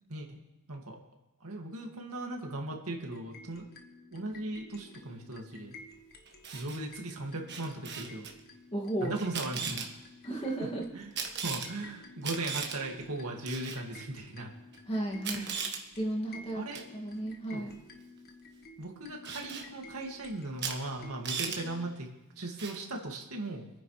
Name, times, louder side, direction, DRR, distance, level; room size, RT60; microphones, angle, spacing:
voice 1, 1.4-3.7 4.1-5.7 6.5-8.3 9.0-9.9 10.9-11.0 11.4-14.5 15.3-15.7 16.5-16.8 17.1-17.2 17.5-17.7 18.8-22.1 22.4-23.7, right 2 dB, 75° right, 1 dB, 2.1 m, -38 dB
sound 1, 3.0-21.9, left 2 dB, 45° left, 1.4 m, -53 dB
Camera, 6.3-6.8 7.5-8.3 9.2-9.9 11.2-11.7 12.2-12.8 13.5-13.8 14.7-14.8 15.2-15.8 16.7-16.9 19.2-19.7 20.6-20.8 21.0-21.6 22.6-22.8, right 6 dB, 50° right, 1.5 m, -37 dB
voice 2, 8.7-9.2 9.6-9.7 10.2-10.9 14.9-15.5 16.0-16.6 16.9-17.7, right 1 dB, 25° left, 0 dB, 2.1 m, -34 dB
26.0 x 9.8 x 3.2 m, 1.0 s
head